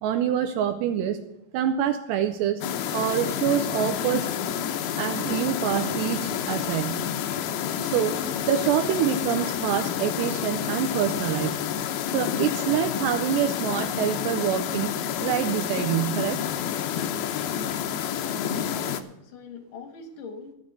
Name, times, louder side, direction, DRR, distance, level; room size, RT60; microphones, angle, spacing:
voice 1, 0.0-1.2 1.5-2.6 2.9-4.3 5.0-7.0 7.8-8.2 8.5-11.6 12.1-14.9 15.2-16.4, right 10 dB, 80° right, 6 dB, 2.6 m, -26 dB
sound 1, 2.6-19.0, left 9 dB, 80° left, 2.2 m, -29 dB
voice 2, 18.2-20.5, left 5 dB, 60° left, 8 dB, 2.5 m, -42 dB
13.0 x 7.3 x 8.1 m, 0.84 s
omnidirectional pair, 5.5 m